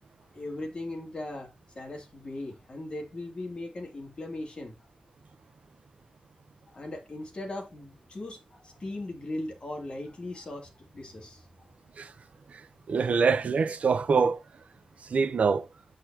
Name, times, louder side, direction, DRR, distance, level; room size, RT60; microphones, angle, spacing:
voice 1, 0.3-4.7 6.7-11.4, left 2 dB, 40° left, 2.9 m, -38 dB
voice 2, 12.9-14.4 15.1-15.7, right 5 dB, 70° right, 0.8 m, -24 dB
9.0 x 6.1 x 2.9 m
wide cardioid pair, 130°, 2 cm